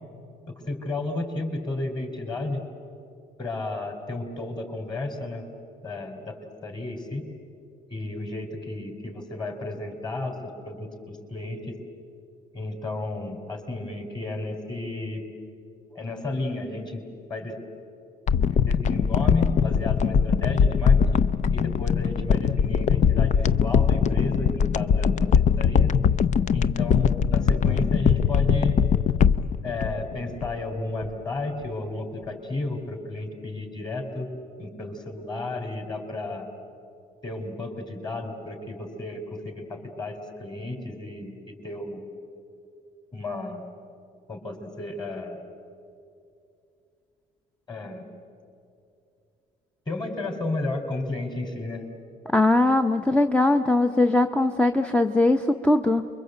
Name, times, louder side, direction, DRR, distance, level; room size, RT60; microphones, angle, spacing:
voice 1, 0.7-2.6 3.4-5.4 5.8-7.2 7.9-11.7 12.5-15.2 15.9-17.0 17.3-17.6 18.6-21.2 21.5-25.3 25.6-25.9 26.5-28.8 29.6-34.3 34.6-36.5 37.2-42.0 43.1-43.6 44.3-45.4 47.7-48.1 49.9-51.9, left 2 dB, 25° left, 4 dB, 4.3 m, -32 dB
sound 1, 18.3-30.7 31.0-31.1, left 7 dB, 45° left, 0.6 m, -21 dB
voice 2, 52.3-56.1, left 2 dB, 5° left, 7 dB, 0.7 m, -20 dB
29.5 x 23.0 x 8.1 m, 2.5 s
cardioid pair, 110°, 17 cm